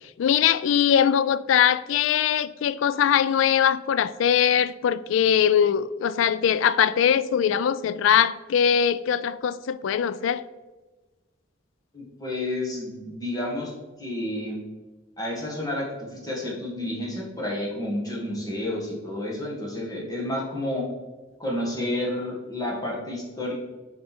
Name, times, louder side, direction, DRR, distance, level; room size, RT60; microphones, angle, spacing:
voice 1, 0.2-10.4, left 8 dB, 75° left, 0.3 m, -21 dB
voice 2, 11.9-13.7 14.0-14.6 15.2-20.8 21.4-23.5, left 1 dB, 20° left, 1.8 m, -30 dB
6.7 x 5.1 x 4.4 m
head